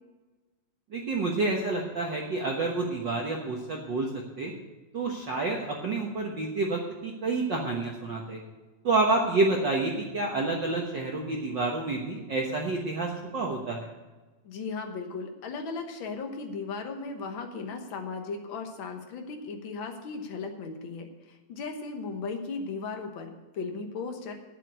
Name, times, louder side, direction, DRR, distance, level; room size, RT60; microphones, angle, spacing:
voice 1, 0.9-4.5 4.9-8.4 8.8-13.9, right 3 dB, 65° right, -1 dB, 1.1 m, -29 dB
voice 2, 14.4-24.3, left 4 dB, 65° left, 4 dB, 1.3 m, -36 dB
9.1 x 8.4 x 8.2 m, 1.2 s
omnidirectional pair, 3.8 m